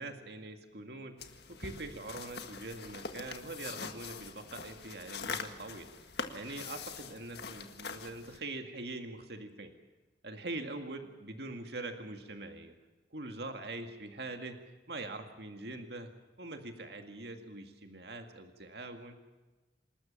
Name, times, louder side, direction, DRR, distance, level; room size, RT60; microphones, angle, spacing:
voice 1, 0.0-1.2 1.5-5.9 6.3-9.8 10.2-12.7 13.1-14.6 14.9-16.1 16.4-19.2, right 2 dB, 60° right, 6 dB, 2.1 m, -43 dB
sound 1, 1.2-8.4, left 5 dB, 60° left, 1.7 m, -43 dB
28.0 x 13.0 x 7.1 m, 1.2 s
head